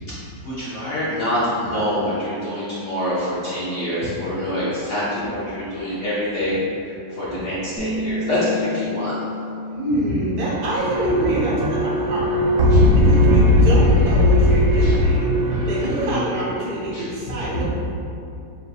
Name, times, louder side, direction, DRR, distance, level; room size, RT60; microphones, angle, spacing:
voice 1, 0.4-6.6 7.2-9.1 12.7-13.2 14.8-14.9 16.9-17.1 17.5-17.6, equal, 60° left, -10 dB, 0.7 m, -25 dB
Bass guitar, 7.8-12.1 12.4-14.0, left 2 dB, 50° right, 0.8 m, -33 dB
voice 2, 9.7-15.3 15.6-17.6, right 1 dB, 65° right, -7 dB, 1.5 m, -26 dB
sound 1, 10.8-16.2, left 1 dB, 85° right, 1.3 m, -17 dB
4.1 x 3.9 x 2.3 m, 2.7 s
omnidirectional pair, 2.0 m